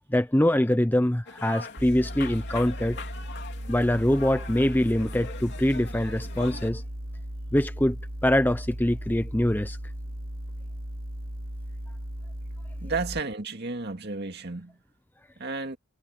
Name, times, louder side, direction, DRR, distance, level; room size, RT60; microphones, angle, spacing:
voice 1, 0.1-3.0 3.7-6.8 7.5-8.0 8.2-9.8, left 1 dB, 10° left, 0.6 m, -24 dB
sound 1, 1.3-6.7, left 4 dB, 50° left, 3.5 m, -42 dB
sound 2, 1.8-13.2, equal, 70° right, 2.9 m, -37 dB
voice 2, 12.8-14.8 15.4-15.8, right 3 dB, 50° right, 2.2 m, -32 dB
head